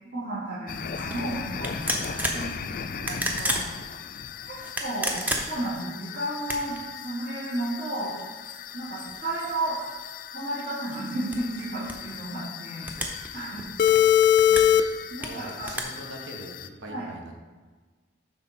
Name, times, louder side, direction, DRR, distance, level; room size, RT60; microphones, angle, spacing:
voice 1, 0.1-3.6 4.5-8.2 8.7-9.8 10.3-13.7 14.5-14.6 15.1-15.7 16.9-17.0, right 1 dB, 55° right, -11 dB, 2.4 m, -33 dB
sound 1, 0.7-16.7, left 10 dB, 45° left, 0.3 m, -28 dB
sound 2, 1.0-1.2 1.6-2.5 3.0-3.7 4.6-5.7 6.4-6.8 7.5-7.6 8.0-10.1 10.6-12.2 12.8-13.3 13.6-14.8 15.2-15.8, right 1 dB, 10° right, 0.7 m, -32 dB
voice 2, 13.8-14.2 15.2-17.4, right 1 dB, 70° right, 1 dB, 1.3 m, -43 dB
7.7 x 5.9 x 4.4 m, 1.4 s
head